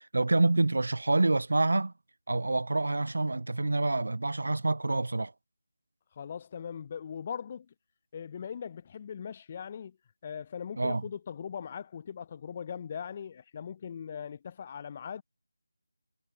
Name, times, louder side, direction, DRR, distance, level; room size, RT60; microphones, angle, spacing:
voice 1, 0.0-1.9 2.3-5.3 10.8-11.0, right 2 dB, 55° right, 0.4 m, -27 dB
voice 2, 6.2-7.7 8.1-10.0 10.2-15.2, left 7 dB, 25° left, 0.9 m, -40 dB
figure-of-eight pair, 160°, 0 cm